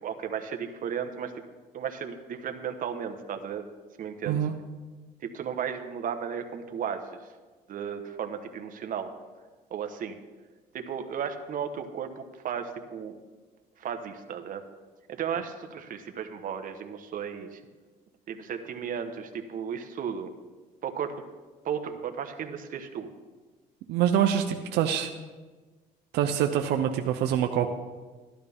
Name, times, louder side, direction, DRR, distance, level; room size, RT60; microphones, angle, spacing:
voice 1, 0.0-1.3 1.7-3.6 4.0-4.4 5.2-7.1 7.7-9.1 9.7-10.2 10.7-13.2 13.8-14.6 15.1-17.6 18.3-20.3 20.8-21.1 21.6-23.1, right 7 dB, 55° right, 6 dB, 1.1 m, -34 dB
voice 2, 23.9-25.1 26.1-27.7, right 9 dB, 85° right, 5 dB, 0.7 m, -25 dB
12.5 x 12.0 x 3.5 m, 1.3 s
cardioid pair, 110°, 17 cm